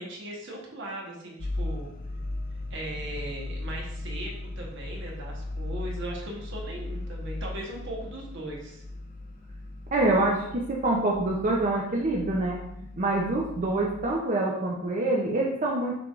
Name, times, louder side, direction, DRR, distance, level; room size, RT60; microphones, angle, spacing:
voice 1, 0.0-1.9 2.7-8.8, right 1 dB, 65° right, -1 dB, 1.1 m, -38 dB
sound 1, 1.4-14.2, left 2 dB, 45° left, 0.5 m, -37 dB
voice 2, 9.9-12.6 13.0-16.0, right 2 dB, 40° right, -3 dB, 0.6 m, -26 dB
5.9 x 3.4 x 2.4 m, 0.77 s
head